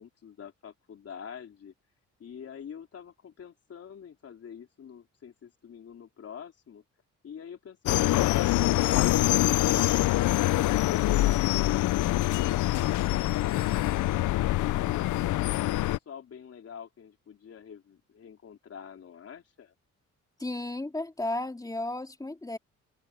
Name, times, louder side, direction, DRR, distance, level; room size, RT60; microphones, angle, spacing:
voice 1, 0.0-1.7 2.2-6.8 7.2-11.5 12.1-13.9 14.3-19.7, left 7 dB, 50° left, 3.7 m, -46 dB
sound 1, 7.9-16.0, left 16 dB, 80° left, 0.7 m, -25 dB
voice 2, 20.4-22.6, left 2 dB, 10° left, 2.6 m, -33 dB
cardioid pair, 90°, 30 cm